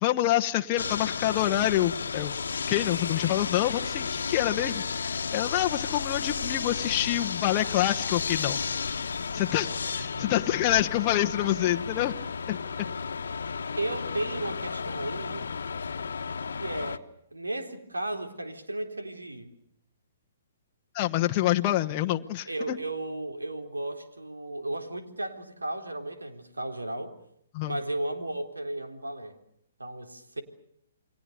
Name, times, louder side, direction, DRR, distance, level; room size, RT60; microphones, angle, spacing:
voice 1, 0.0-2.3 2.7-8.6 9.3-12.1 12.5-12.6 20.9-22.8 27.5-27.8, left 14 dB, 35° left, 4 dB, 1.1 m, -27 dB
sound 1, 0.8-17.0, left 5 dB, 70° left, 1.4 m, -33 dB
voice 2, 13.8-15.5 16.6-19.5 22.5-27.1 27.6-29.4 29.8-30.4, right 1 dB, 90° right, 5 dB, 3.7 m, -34 dB
29.5 x 23.5 x 6.7 m, 0.73 s
figure-of-eight pair, 130°, 0 cm